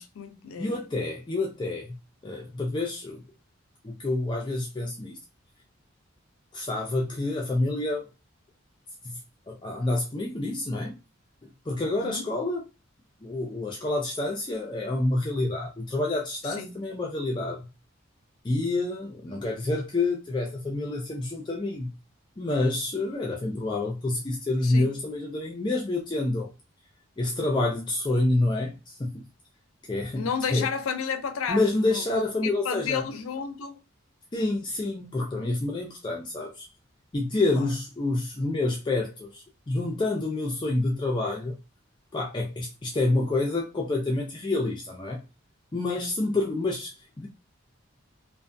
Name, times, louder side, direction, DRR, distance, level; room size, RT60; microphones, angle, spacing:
voice 1, 0.0-0.7 12.0-12.2 16.4-16.8 24.6-24.9 30.1-33.8 37.5-37.7 45.8-46.3, left 6 dB, 85° left, 0.5 m, -32 dB
voice 2, 0.6-2.0 2.2-3.2 3.8-5.1 6.5-8.1 9.0-9.2 9.5-10.9 11.7-12.6 13.2-17.6 18.4-21.9 22.4-26.5 27.2-29.2 29.9-30.7 31.5-33.0 34.3-36.7 37.1-41.6 42.1-45.2 45.7-46.9 47.2-47.3, left 2 dB, 20° left, 0.3 m, -28 dB
2.5 x 2.4 x 2.5 m
head